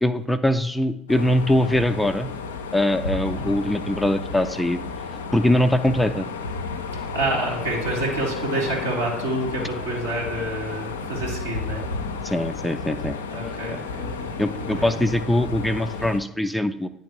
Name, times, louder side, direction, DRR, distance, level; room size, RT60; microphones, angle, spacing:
voice 1, 0.0-2.3 2.7-4.8 5.3-6.3 12.2-13.1 14.4-16.9, left 1 dB, 5° left, 8 dB, 0.4 m, -22 dB
sound 1, 1.1-16.2, left 4 dB, 80° left, 0.4 m, -32 dB
voice 2, 7.1-11.8 13.3-14.3 14.7-15.0, right 2 dB, 85° right, -6 dB, 1.8 m, -28 dB
9.8 x 3.3 x 3.0 m, 0.79 s
figure-of-eight pair, 55°, 0 cm